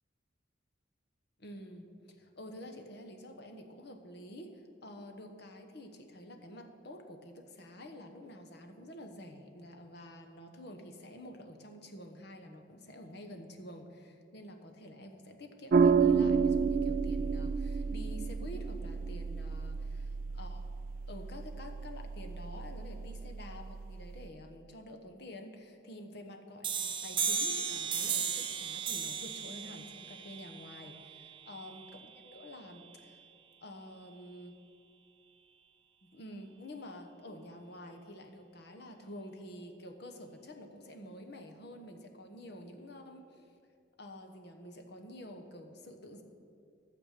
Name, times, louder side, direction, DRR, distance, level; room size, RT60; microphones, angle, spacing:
voice 1, 1.4-1.9 2.2-20.0 20.3-20.7 21.1-33.2 33.6-34.6 36.0-43.4 44.0-46.2, left 1 dB, 55° left, 5 dB, 1.1 m, -48 dB
sound 1, 15.7-24.3, right 5 dB, 45° right, 0.3 m, -31 dB
sound 2, 26.6-32.0, right 6 dB, 25° right, 0.8 m, -36 dB
12.0 x 7.2 x 6.6 m, 2.4 s
head